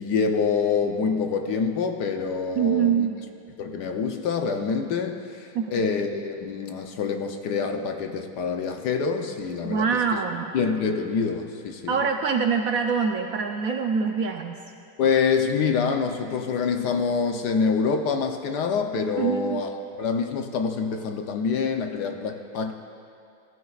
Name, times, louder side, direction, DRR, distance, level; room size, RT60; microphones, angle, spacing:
voice 1, 0.0-3.1 3.6-10.0 10.5-12.0 15.0-22.7, left 5 dB, 70° left, 5 dB, 1.3 m, -26 dB
voice 2, 2.6-3.2 5.5-5.8 9.6-10.5 11.9-14.6 19.2-19.6, right 6 dB, 65° right, 3 dB, 0.9 m, -24 dB
19.0 x 14.0 x 2.4 m, 2.4 s
omnidirectional pair, 1.9 m